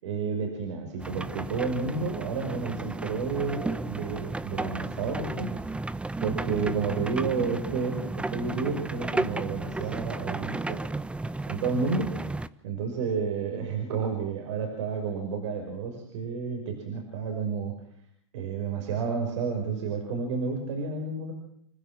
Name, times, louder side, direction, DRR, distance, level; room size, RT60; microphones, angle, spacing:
voice 1, 0.0-5.5 6.2-8.0 8.3-10.8 11.5-12.1 12.6-17.7 18.3-21.3, right 5 dB, 75° right, 3 dB, 5.9 m, -31 dB
sound 1, 1.0-12.5, right 2 dB, 5° right, 0.9 m, -33 dB
29.5 x 15.5 x 7.6 m, 0.68 s
hypercardioid pair, 115°, 15 cm